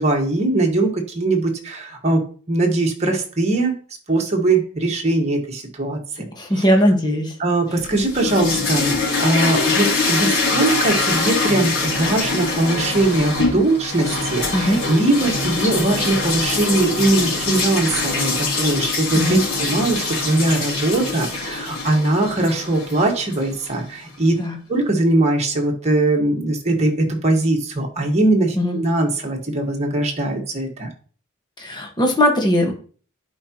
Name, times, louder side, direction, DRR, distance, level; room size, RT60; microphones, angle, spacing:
voice 1, 0.0-3.8 4.1-6.3 6.5-6.6 7.4-24.4 24.7-30.9, right 2 dB, 30° right, 0 dB, 1.6 m, -21 dB
voice 2, 6.4-7.3 14.5-14.8 19.1-19.4 24.4-24.6 28.6-28.8 31.6-32.7, equal, 20° left, 2 dB, 1.5 m, -19 dB
sound 1, 7.8-23.8, left 3 dB, 75° left, 3.0 m, -23 dB
11.0 x 4.8 x 3.0 m, 0.41 s
head